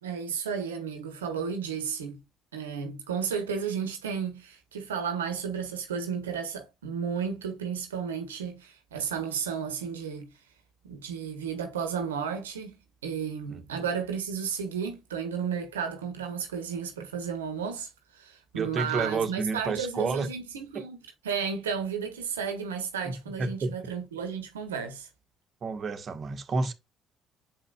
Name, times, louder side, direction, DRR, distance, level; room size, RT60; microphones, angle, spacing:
voice 1, 0.0-2.2 2.5-10.3 10.8-12.8 13.0-21.0 21.2-25.1, right 6 dB, 90° right, 1.1 m, -33 dB
voice 2, 13.5-13.8 18.5-20.3 20.7-20.8 23.0-23.1 23.4-23.7 25.6-26.7, right 4 dB, 50° right, 1.3 m, -30 dB
7.4 x 5.3 x 2.4 m
hypercardioid pair, 50°, 0 cm